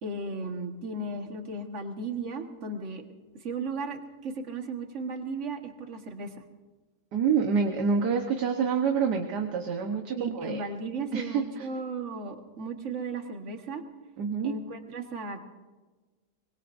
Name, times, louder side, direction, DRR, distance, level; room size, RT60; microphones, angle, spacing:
voice 1, 0.0-3.0 3.4-6.3 10.2-13.8 14.4-15.4, right 3 dB, 45° right, 5 dB, 1.7 m, -35 dB
voice 2, 7.1-10.6 11.1-11.7 14.2-14.5, right 6 dB, 75° right, 3 dB, 1.7 m, -27 dB
24.5 x 21.0 x 2.6 m, 1.3 s
omnidirectional pair, 1.8 m